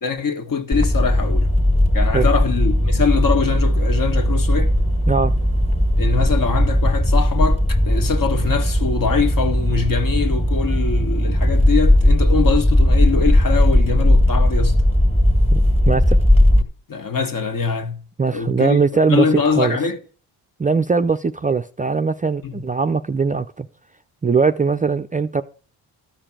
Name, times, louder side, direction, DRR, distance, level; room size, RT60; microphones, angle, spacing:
voice 1, 0.0-1.5 1.9-4.7 6.0-14.8 16.9-18.8 19.1-20.0 22.4-22.6, left 5 dB, 50° left, 1.7 m, -23 dB
sound 1, 0.7-16.6, left 1 dB, 15° left, 1.8 m, -17 dB
voice 2, 15.5-16.2 18.2-19.8 20.6-23.7 24.2-25.4, right 4 dB, 20° right, 0.5 m, -20 dB
13.5 x 5.0 x 7.4 m
cardioid pair, 85°, 43 cm